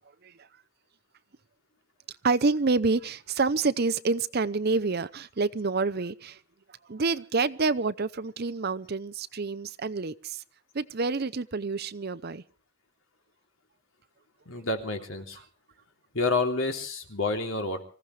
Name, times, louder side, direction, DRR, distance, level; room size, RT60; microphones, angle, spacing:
voice 1, 2.2-6.4 6.9-10.4 10.7-12.4, right 4 dB, 50° right, 0.7 m, -28 dB
voice 2, 14.4-15.4 16.1-17.8, left 3 dB, 70° left, 3.1 m, -29 dB
25.5 x 15.5 x 3.3 m
head